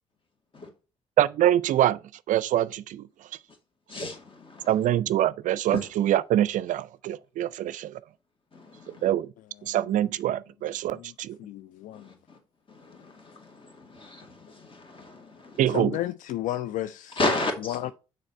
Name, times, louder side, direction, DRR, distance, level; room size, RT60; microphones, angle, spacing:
voice 1, 1.2-2.0 2.3-3.1 4.7-8.0 9.0-9.3 9.6-11.4 15.6-16.0, right 12 dB, 65° right, 0.4 m, -24 dB
voice 2, 3.9-4.7 5.7-5.9 8.5-9.1 11.9-12.4 12.7-15.6 17.2-17.8, left 2 dB, 40° left, 2.3 m, -33 dB
voice 3, 10.9-12.1 15.7-17.2 17.6-17.9, left 13 dB, 70° left, 0.4 m, -33 dB
6.4 x 4.2 x 4.2 m
hypercardioid pair, 50°, 14 cm